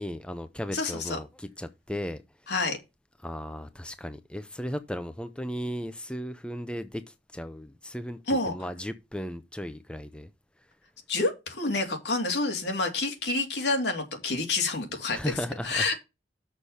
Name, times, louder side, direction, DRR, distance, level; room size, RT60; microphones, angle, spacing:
voice 1, 0.0-2.2 3.2-8.2 8.4-10.3 15.1-15.9, equal, 5° left, 0.5 m, -36 dB
voice 2, 0.7-1.2 2.5-2.8 8.3-8.5 11.1-15.3 15.6-15.9, left 3 dB, 70° left, 2.6 m, -28 dB
6.7 x 6.4 x 5.6 m
head